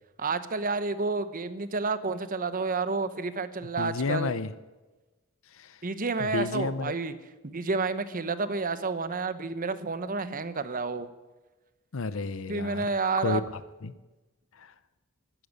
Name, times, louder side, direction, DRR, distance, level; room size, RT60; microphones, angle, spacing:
voice 1, 0.2-4.3 5.8-7.1 7.4-11.1 12.5-13.4, right 4 dB, 40° right, 13 dB, 0.9 m, -30 dB
voice 2, 3.8-4.5 5.5-5.8 6.2-6.9 11.9-13.9 14.5-14.7, left 3 dB, 65° left, 15 dB, 0.7 m, -32 dB
13.5 x 10.5 x 9.4 m, 1.2 s
head